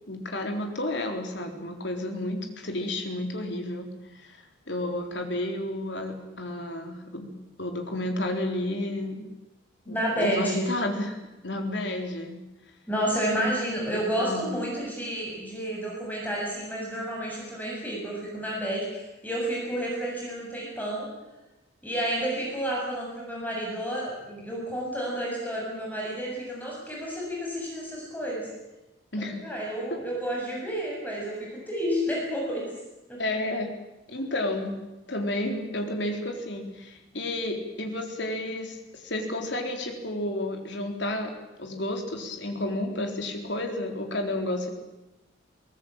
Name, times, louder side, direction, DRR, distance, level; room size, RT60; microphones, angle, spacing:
voice 1, 0.1-7.3 7.6-9.3 9.9-11.2 11.4-12.4 13.9-14.6 29.1-29.4 29.9-30.0 33.2-33.7 34.1-34.7 35.1-41.3 41.6-44.7, left 1 dB, 60° left, 3 dB, 4.0 m, -31 dB
voice 2, 9.9-10.6 12.9-21.1 21.8-28.5 29.2-32.6 33.1-33.2, equal, 10° left, -3 dB, 7.4 m, -30 dB
22.0 x 19.0 x 9.1 m, 1.0 s
head